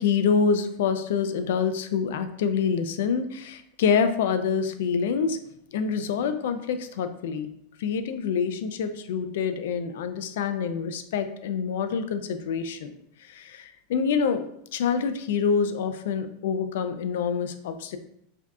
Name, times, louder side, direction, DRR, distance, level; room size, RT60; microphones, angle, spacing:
voice 1, 0.0-5.4 5.7-7.5 7.8-12.9 13.2-14.5 14.7-18.0, left 6 dB, 75° left, 9 dB, 0.4 m, -26 dB
4.7 x 2.7 x 2.3 m, 0.74 s
supercardioid pair, 155°, 0 cm